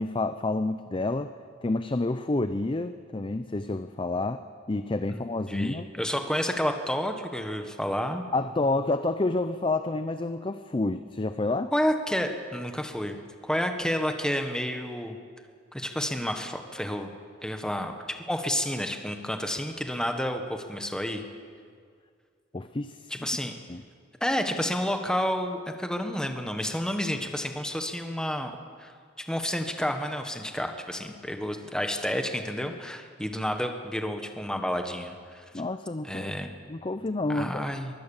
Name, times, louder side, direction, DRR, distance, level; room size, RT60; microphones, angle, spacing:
voice 1, 0.0-1.3 1.6-4.4 4.7-5.9 8.3-11.7 22.5-23.3 23.7-23.8 35.5-36.3 36.7-37.6, left 2 dB, 25° left, 10 dB, 0.5 m, -29 dB
voice 2, 5.5-8.2 11.7-13.2 13.4-15.2 15.7-17.1 17.4-17.9 18.3-21.2 23.1-23.5 24.2-28.5 28.8-28.9 29.3-35.4 36.0-36.5 37.3-37.9, equal, 5° left, 5 dB, 1.4 m, -30 dB
23.5 x 15.5 x 7.2 m, 2.1 s
head